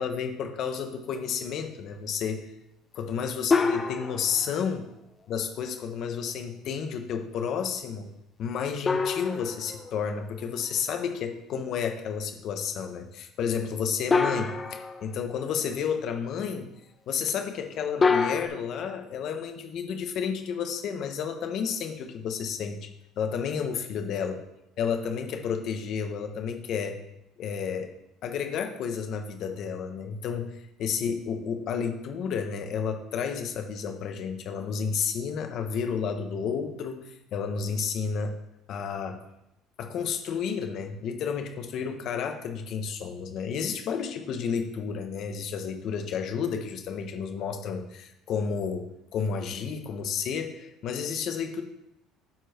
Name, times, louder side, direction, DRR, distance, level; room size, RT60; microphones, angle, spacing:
voice 1, 0.0-2.4 2.9-4.8 5.3-8.1 8.4-16.7 17.1-22.9 23.2-24.3 24.8-27.0 27.4-27.9 28.2-30.5 30.8-38.3 38.7-39.2 39.8-51.6, left 6 dB, 55° left, 5 dB, 1.4 m, -31 dB
sound 1, 3.5-4.6 8.9-10.4 14.1-15.3 18.0-18.5, left 4 dB, 25° left, 0.8 m, -26 dB
12.0 x 4.7 x 4.6 m, 0.84 s
cardioid pair, 125°, 0 cm